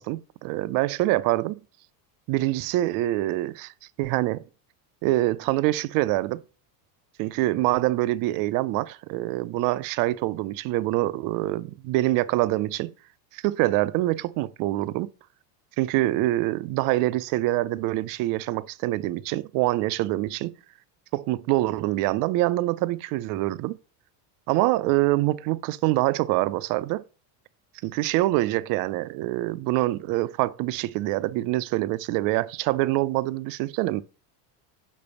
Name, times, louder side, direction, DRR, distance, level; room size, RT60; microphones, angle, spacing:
voice 1, 0.0-1.6 2.3-3.7 4.0-4.5 5.0-6.4 7.2-12.9 13.3-15.1 15.8-20.5 21.1-23.8 24.5-27.0 27.8-34.0, right 17 dB, 45° right, 0.4 m, -25 dB
5.9 x 5.3 x 6.7 m
cardioid pair, 160°, 49 cm